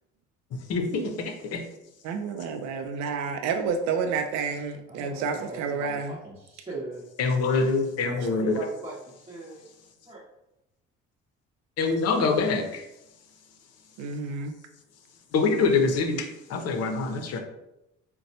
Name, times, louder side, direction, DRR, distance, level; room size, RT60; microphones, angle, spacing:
voice 1, 0.5-1.6 7.2-8.6 11.8-12.9 15.3-17.4, left 4 dB, 60° left, 4 dB, 0.6 m, -25 dB
voice 2, 2.0-6.2 14.0-14.5, right 5 dB, 70° right, 6 dB, 0.4 m, -30 dB
voice 3, 4.9-7.1 8.2-9.7 10.1-10.2 17.3-17.4, right 2 dB, 20° right, -8 dB, 0.8 m, -40 dB
4.0 x 2.2 x 2.7 m, 0.90 s
supercardioid pair, 80°, 29 cm